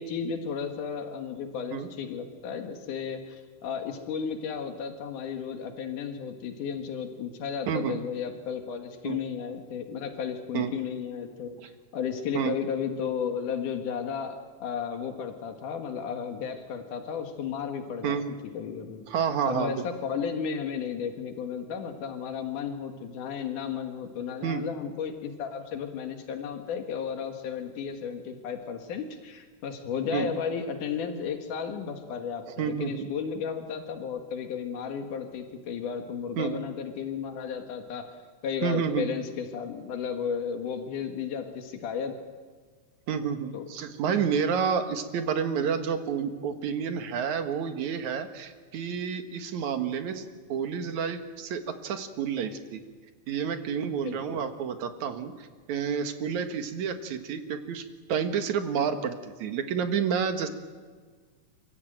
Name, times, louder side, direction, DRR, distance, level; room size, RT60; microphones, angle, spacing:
voice 1, 0.0-11.6 11.9-19.0 19.5-38.1 38.4-42.1 43.5-43.6 54.0-54.4, left 7 dB, 85° left, 5 dB, 3.2 m, -34 dB
voice 2, 7.7-8.0 9.0-9.2 10.5-10.7 12.3-12.5 18.0-18.2 19.1-19.9 24.4-24.6 30.1-30.3 32.6-33.1 36.4-36.5 38.6-39.1 43.1-50.2 50.5-52.8 53.3-60.5, right 7 dB, 70° right, 7 dB, 2.9 m, -29 dB
30.0 x 15.5 x 9.1 m, 1.5 s
omnidirectional pair, 3.5 m